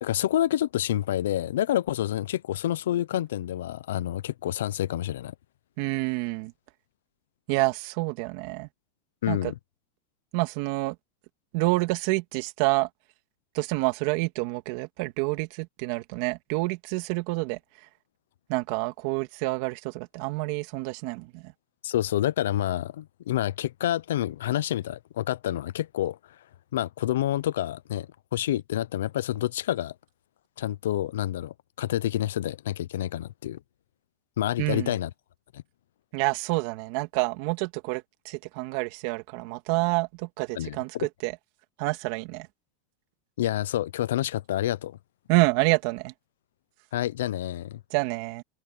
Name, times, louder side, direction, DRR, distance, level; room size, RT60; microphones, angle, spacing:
voice 1, 0.0-5.3 9.2-9.5 21.8-26.2 26.7-29.9 30.6-33.6 34.4-35.1 35.5-35.6 40.6-40.8 43.4-45.0 46.9-47.8, left 12 dB, 85° left, 0.6 m, -28 dB
voice 2, 5.8-6.5 7.5-8.7 9.3-9.5 10.3-11.0 11.5-12.9 13.5-17.9 18.5-21.5 34.6-35.0 36.1-41.4 41.8-42.5 45.3-46.1 47.9-48.4, right 23 dB, 55° right, 2.4 m, -28 dB
supercardioid pair, 135°, 0 cm